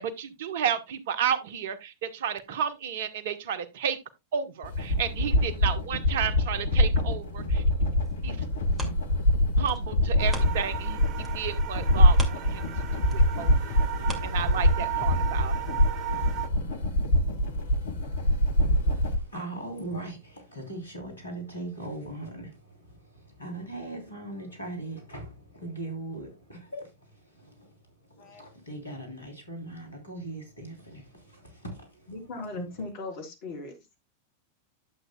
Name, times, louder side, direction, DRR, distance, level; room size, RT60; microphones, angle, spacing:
voice 1, 0.0-4.0 4.3-7.6 8.2-8.4 9.6-11.0 11.3-12.6 13.1-13.7 14.2-15.5, right 8 dB, 55° right, 1.0 m, -32 dB
sound 1, 4.6-19.2, left 1 dB, 65° left, 1.4 m, -24 dB
sound 2, 8.0-10.9 11.2-15.0 15.5-15.6, right 1 dB, 15° right, 2.2 m, -44 dB
sound 3, 10.2-16.5, right 12 dB, 35° right, 1.1 m, -37 dB
voice 2, 18.7-32.6, right 2 dB, 80° left, 3.4 m, -40 dB
voice 3, 32.1-33.7, left 2 dB, 50° left, 3.3 m, -38 dB
11.5 x 7.9 x 2.3 m
figure-of-eight pair, 90°, 0 cm